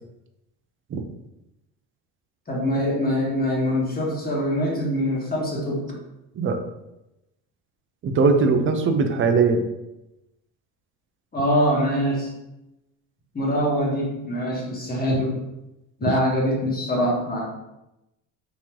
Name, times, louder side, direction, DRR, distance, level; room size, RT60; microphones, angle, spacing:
voice 1, 2.5-5.8 11.3-12.3 13.3-15.3 16.0-17.4, equal, 25° left, -3 dB, 1.4 m, -23 dB
voice 2, 8.0-9.7 16.1-16.2, right 4 dB, 30° right, 6 dB, 0.5 m, -20 dB
3.7 x 2.8 x 3.0 m, 0.91 s
supercardioid pair, 90°, 40 cm